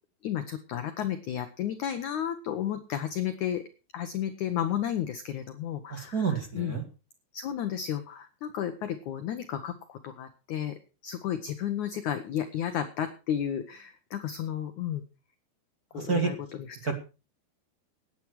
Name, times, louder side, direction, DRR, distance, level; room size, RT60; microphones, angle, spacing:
voice 1, 0.2-3.6 3.9-6.7 7.3-15.0 15.9-16.9, left 10 dB, 75° left, 8 dB, 1.8 m, -33 dB
voice 2, 5.9-6.8 15.9-16.3 16.8-16.9, right 5 dB, 45° right, 5 dB, 1.1 m, -29 dB
18.0 x 10.0 x 4.6 m, 0.32 s
omnidirectional pair, 4.9 m